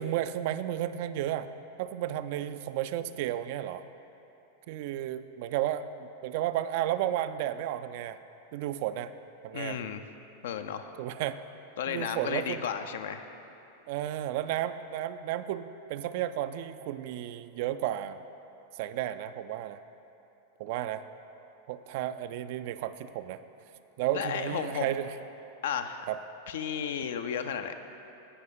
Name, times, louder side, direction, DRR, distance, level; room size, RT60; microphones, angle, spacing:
voice 1, 0.0-1.5 1.8-3.8 4.7-8.2 8.5-9.1 9.4-9.8 11.0-11.4 11.9-12.7 13.9-18.2 18.7-19.8 20.6-21.0 21.7-23.4 24.0-25.1 26.1-26.2, right 12 dB, 50° right, 12 dB, 0.3 m, -33 dB
voice 2, 9.5-10.0 10.4-10.9 11.8-13.3 24.1-24.9 25.6-26.1 26.5-27.7, left 8 dB, 60° left, 9 dB, 0.5 m, -33 dB
16.5 x 5.5 x 3.8 m, 2.8 s
figure-of-eight pair, 90°, 0 cm